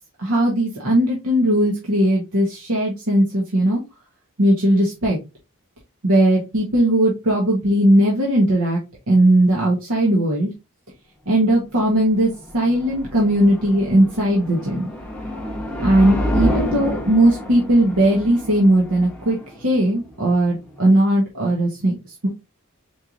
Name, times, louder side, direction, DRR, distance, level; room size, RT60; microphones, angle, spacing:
voice 1, 0.2-3.8 4.4-5.2 6.0-8.8 9.1-10.5 11.3-14.9 15.8-22.0, right 1 dB, 85° right, -3 dB, 1.2 m, -18 dB
sound 1, 11.8-20.8, left 1 dB, 5° left, 0.7 m, -29 dB
4.5 x 3.0 x 2.5 m, 0.25 s
head